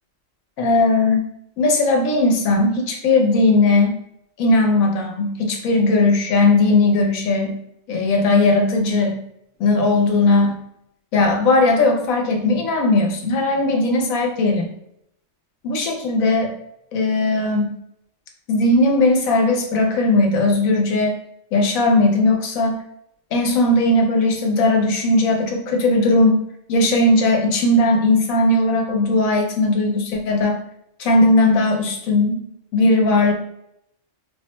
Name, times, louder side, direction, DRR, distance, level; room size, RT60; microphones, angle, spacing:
voice 1, 0.6-1.3 1.6-3.9 4.4-7.6 7.9-9.2 9.6-10.6 11.1-14.7 15.6-16.5 16.9-17.7 18.5-21.2 21.5-22.8 23.3-26.4 26.7-30.6 31.0-32.4 32.7-33.3, left 2 dB, 80° left, 2 dB, 1.1 m, -18 dB
4.2 x 2.1 x 3.0 m, 0.77 s
omnidirectional pair, 1.4 m